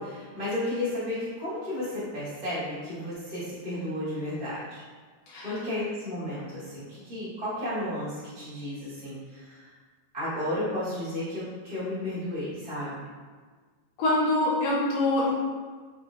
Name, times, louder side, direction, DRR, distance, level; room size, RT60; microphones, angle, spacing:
voice 1, 0.0-4.8 5.4-9.7 10.1-13.0, left 1 dB, 45° right, -12 dB, 0.5 m, -33 dB
voice 2, 14.0-15.3, left 2 dB, 75° left, -5 dB, 1.6 m, -25 dB
5.5 x 2.2 x 2.5 m, 1.5 s
omnidirectional pair, 3.3 m